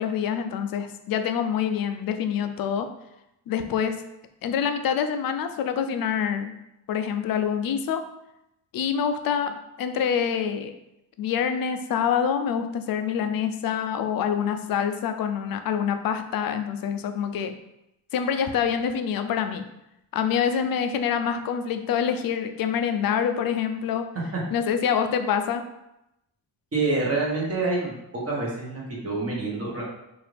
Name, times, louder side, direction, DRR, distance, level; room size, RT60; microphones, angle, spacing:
voice 1, 0.0-2.9 3.5-4.0 4.4-6.5 6.9-8.0 8.7-10.7 11.2-17.5 18.1-19.6 20.1-24.1 24.5-25.6, left 7 dB, 55° left, 8 dB, 0.4 m, -26 dB
voice 2, 26.7-29.8, right 3 dB, 35° right, -4 dB, 1.2 m, -27 dB
4.8 x 2.6 x 3.3 m, 0.88 s
wide cardioid pair, 155°, 43 cm